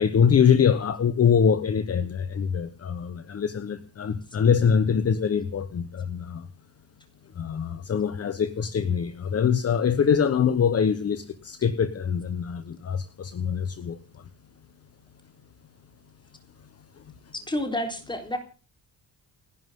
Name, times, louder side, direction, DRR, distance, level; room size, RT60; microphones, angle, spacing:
voice 1, 0.0-6.5 7.3-14.2 17.1-17.2, left 7 dB, 40° left, 1.1 m, -24 dB
voice 2, 17.3-18.4, left 1 dB, 10° left, 3.8 m, -29 dB
29.5 x 11.0 x 3.7 m
wide cardioid pair, 155°, 37 cm